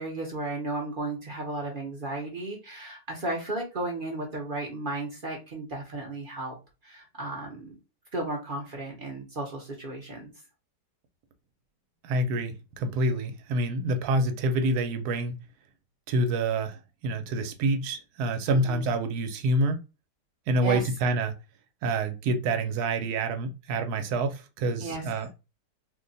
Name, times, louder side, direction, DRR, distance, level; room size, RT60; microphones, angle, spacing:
voice 1, 0.0-6.5 6.8-7.7 8.1-10.3 18.5-18.8 20.6-20.9 24.8-25.0, right 2 dB, 45° right, 0.7 m, -34 dB
voice 2, 12.0-15.4 16.1-19.8 20.5-21.3 21.8-25.3, right 2 dB, 70° right, 1.1 m, -27 dB
2.8 x 2.2 x 3.8 m
omnidirectional pair, 1.8 m